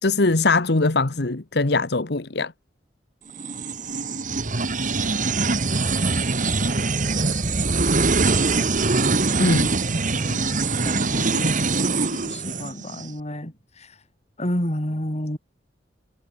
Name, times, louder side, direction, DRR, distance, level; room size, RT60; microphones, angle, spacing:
voice 1, 0.0-2.5 9.4-9.7, left 3 dB, 65° left, 1.3 m, -21 dB
sound 1, 3.4-13.1, right 3 dB, 45° right, 2.1 m, -23 dB
voice 2, 8.4-9.0 9.8-10.5 10.8-11.6 12.0-14.0 14.4-15.4, equal, 40° left, 4.9 m, -31 dB
head